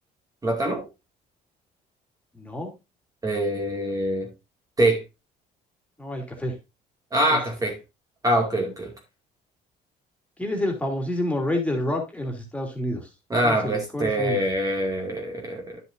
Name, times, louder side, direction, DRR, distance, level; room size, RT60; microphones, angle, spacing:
voice 1, 0.4-0.9 3.2-4.3 4.8-5.0 7.1-7.8 8.2-8.9 13.3-15.8, right 1 dB, 20° right, 2.4 m, -24 dB
voice 2, 2.3-2.7 6.0-6.5 7.3-7.4 10.4-13.1 13.4-14.4, left 1 dB, 10° left, 3.1 m, -28 dB
11.0 x 7.2 x 2.7 m
cardioid pair, 110°, 17 cm